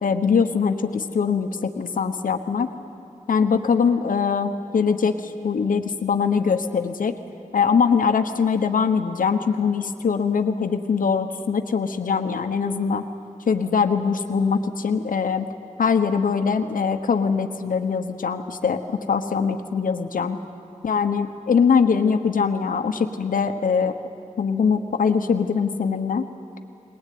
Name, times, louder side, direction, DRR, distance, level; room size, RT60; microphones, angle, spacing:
voice 1, 0.0-2.7 3.3-7.2 7.5-13.1 13.5-15.5 15.8-20.4 20.8-23.9 24.4-26.3, left 6 dB, 85° left, 7 dB, 1.1 m, -22 dB
21.0 x 19.5 x 9.5 m, 2.8 s
wide cardioid pair, 120°, 14 cm